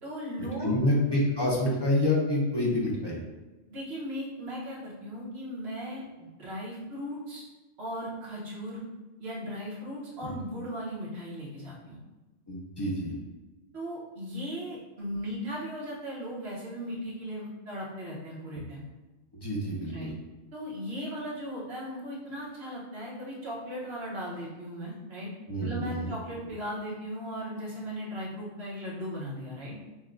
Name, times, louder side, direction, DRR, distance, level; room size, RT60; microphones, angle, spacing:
voice 1, 0.0-0.9 3.7-7.4 7.8-8.8 9.2-12.0 13.7-18.8 19.9-20.1 20.5-25.3 25.6-29.8, equal, 55° right, -6 dB, 1.3 m, -37 dB
voice 2, 0.6-3.2 10.2-10.4 12.5-13.1 19.3-20.1 25.5-26.1, left 1 dB, 30° left, -4 dB, 0.4 m, -27 dB
5.8 x 2.2 x 2.5 m, 1.1 s
omnidirectional pair, 1.3 m